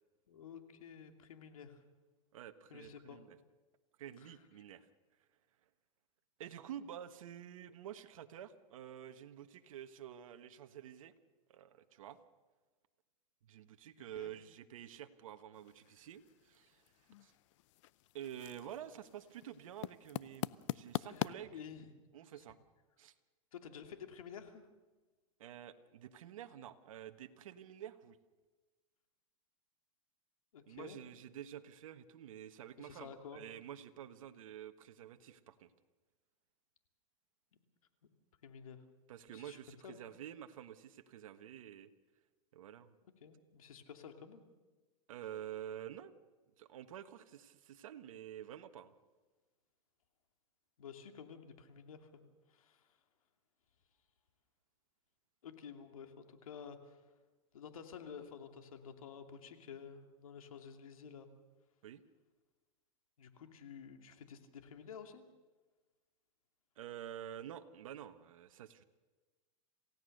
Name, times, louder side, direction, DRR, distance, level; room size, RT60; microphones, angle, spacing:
voice 1, 0.3-1.8 2.7-3.2 4.2-4.4 14.1-14.3 21.1-21.9 22.3-22.4 23.5-24.7 30.5-31.1 32.8-33.4 38.4-38.8 39.3-39.6 39.8-40.0 43.2-44.5 50.8-52.2 52.5-52.9 55.4-57.0 57.5-61.3 63.2-65.2, left 7 dB, 85° left, 6 dB, 2.6 m, -51 dB
voice 2, 2.3-3.4 4.0-4.9 6.4-11.1 11.5-12.2 13.5-16.8 17.2-17.3 18.1-21.6 22.1-22.6 23.0-23.1 25.4-28.2 30.7-35.7 39.1-41.9 42.5-42.9 45.1-46.1 46.6-48.9 61.8-62.0 66.8-68.8, right 10 dB, 75° right, 8 dB, 1.4 m, -49 dB
sound 1, 15.5-21.3, left 17 dB, 60° left, 0.6 m, -44 dB
28.0 x 16.5 x 6.6 m, 1.3 s
hypercardioid pair, 130°, 17 cm